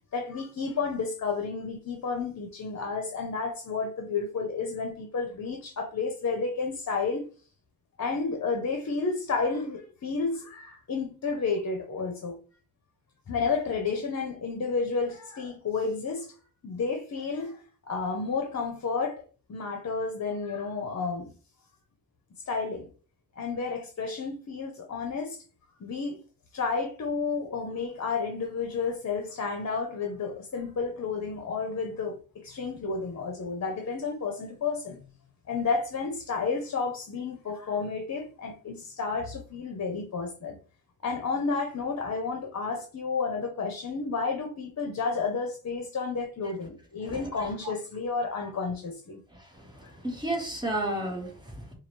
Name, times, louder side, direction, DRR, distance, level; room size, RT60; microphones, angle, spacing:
voice 1, 0.1-7.2 8.0-12.4 13.3-16.4 16.6-19.2 19.5-21.3 22.5-22.9 23.3-25.4 25.8-26.2 26.5-35.0 35.5-40.6 41.0-49.2, left 4 dB, 50° left, 0.7 m, -31 dB
voice 2, 49.5-51.7, right 1 dB, 10° right, 1.4 m, -33 dB
4.7 x 2.4 x 3.1 m
wide cardioid pair, 125°, 34 cm